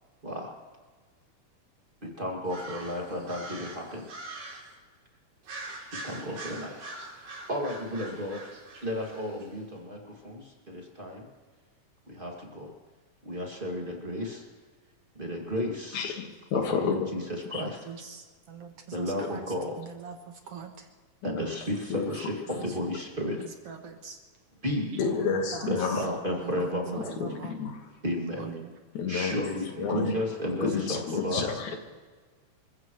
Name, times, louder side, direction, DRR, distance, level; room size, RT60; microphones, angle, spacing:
voice 1, 0.2-0.6 2.0-4.1 6.0-6.9 7.2-8.4 8.8-11.3 12.1-12.7 13.2-14.4 15.2-16.1 16.5-17.2 17.5-17.8 18.9-19.7 21.2-23.4 24.6-25.0 25.7-27.1 28.0-28.5 29.1-31.6, left 1 dB, 20° right, -1 dB, 2.1 m, -33 dB
sound 1, 2.4-4.7 5.4-9.5, right 2 dB, 90° right, 4.5 m, -43 dB
voice 2, 15.9-17.6 21.2-21.6 21.9-22.1 24.9-26.1 27.2-27.9 28.9-29.4 29.8-30.1 30.6-31.8, left 6 dB, 80° left, 4 dB, 3.0 m, -31 dB
voice 3, 17.9-20.9 22.6-22.7 23.4-24.2 24.9-25.7 26.4-27.6 28.4-28.7 31.7-31.8, right 7 dB, 65° right, 5 dB, 1.9 m, -42 dB
27.5 x 15.5 x 3.1 m, 1.5 s
omnidirectional pair, 3.3 m